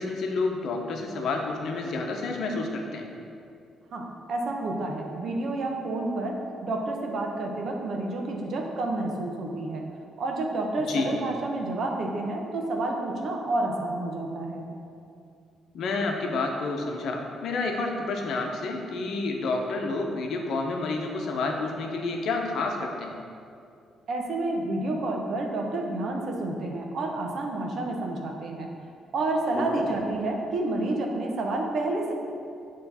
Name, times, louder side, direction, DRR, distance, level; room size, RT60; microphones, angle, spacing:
voice 1, 0.0-3.1 10.9-11.1 15.7-23.1 29.5-29.8, left 3 dB, 70° left, 2 dB, 0.8 m, -29 dB
voice 2, 3.9-9.8 10.2-14.7 24.1-28.7 29.1-32.1, right 2 dB, 65° right, 1 dB, 0.9 m, -29 dB
7.9 x 3.2 x 4.1 m, 2.5 s
cardioid pair, 90°, 0 cm